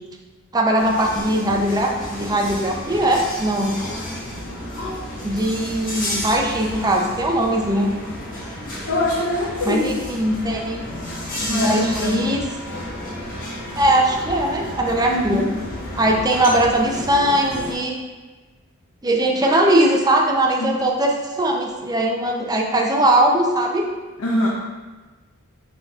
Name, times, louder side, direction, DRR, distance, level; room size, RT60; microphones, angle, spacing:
voice 1, 0.5-3.8 5.2-8.0 9.6-10.9 11.4-12.4 13.7-15.4 15.9-17.9 19.0-23.8, right 1 dB, 20° right, 0 dB, 0.5 m, -20 dB
sound 1, 0.8-17.8, left 1 dB, 40° left, 1.2 m, -32 dB
voice 2, 8.9-9.9 11.5-12.4 15.1-15.6 20.6-20.7 24.2-24.5, left 1 dB, 75° left, -4 dB, 0.7 m, -23 dB
5.6 x 4.0 x 2.4 m, 1.3 s
head